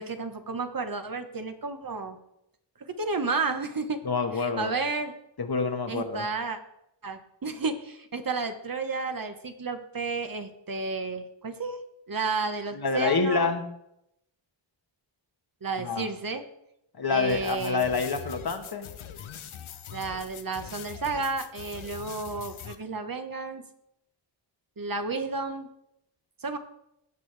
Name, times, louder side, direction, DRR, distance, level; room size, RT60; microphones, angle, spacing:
voice 1, 0.0-2.2 2.8-4.0 4.4-5.1 5.9-6.6 7.0-11.8 12.1-13.5 15.6-16.4 17.1-17.9 19.9-23.6 24.8-25.7 26.4-26.6, right 4 dB, 45° right, 7 dB, 1.1 m, -32 dB
voice 2, 4.0-4.7 5.4-6.2 12.7-13.6 15.8-16.1 17.0-18.9, left 4 dB, 50° left, 6 dB, 1.2 m, -27 dB
sound 1, 17.3-22.8, left 8 dB, 85° left, 0.8 m, -42 dB
16.5 x 6.2 x 3.3 m, 0.82 s
cardioid pair, 45°, 48 cm